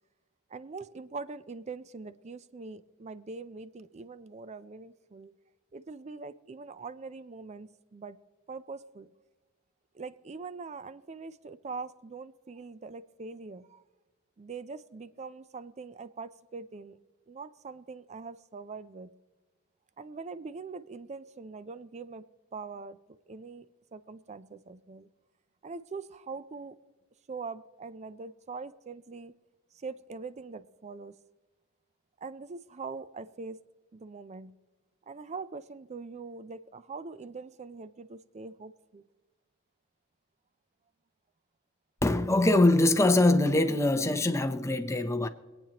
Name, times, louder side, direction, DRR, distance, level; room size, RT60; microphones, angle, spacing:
voice 1, 0.5-5.3 5.7-8.2 8.5-9.1 9.9-13.8 14.4-17.0 17.3-19.1 20.0-22.2 22.5-23.0 23.3-23.7 23.9-25.1 25.6-26.8 27.3-29.3 29.7-31.2 32.2-33.6 33.9-34.5 35.1-39.0, right 4 dB, 30° right, 0.4 m, -42 dB
voice 2, 42.0-45.3, left 2 dB, 15° left, 0.6 m, -23 dB
25.0 x 8.9 x 2.9 m
head